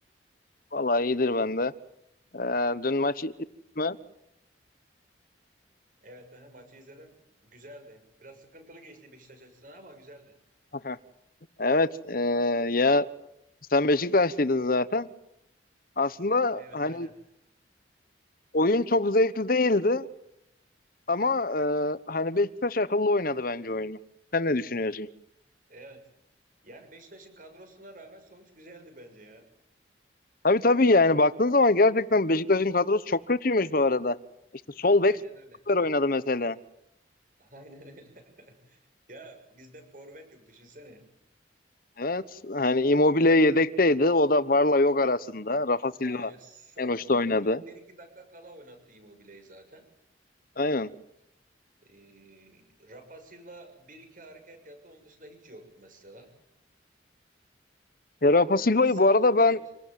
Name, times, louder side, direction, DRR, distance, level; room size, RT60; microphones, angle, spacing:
voice 1, 0.7-1.7 2.3-3.3 3.8-4.0 10.8-11.0 11.6-13.1 13.7-15.1 16.0-17.1 18.5-20.1 21.1-24.0 24.3-25.1 30.4-34.2 34.8-35.1 35.7-36.6 42.0-46.3 46.8-47.6 50.6-50.9 58.2-59.6, left 2 dB, 50° left, 16 dB, 1.1 m, -23 dB
voice 2, 6.0-10.4 16.5-17.2 25.7-26.0 26.6-29.5 34.9-35.6 37.4-41.0 46.0-47.0 47.4-49.8 51.8-56.3 58.5-59.6, right 1 dB, 45° right, 6 dB, 6.7 m, -50 dB
27.0 x 19.0 x 9.3 m, 0.81 s
head